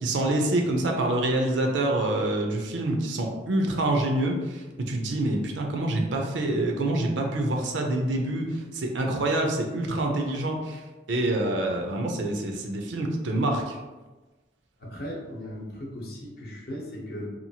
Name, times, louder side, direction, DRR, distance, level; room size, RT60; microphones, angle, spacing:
voice 1, 0.0-10.8 11.1-13.8, right 1 dB, 80° right, 2 dB, 0.5 m, -26 dB
voice 2, 14.8-17.3, equal, 55° left, -2 dB, 0.7 m, -37 dB
2.8 x 2.3 x 2.7 m, 1.2 s
head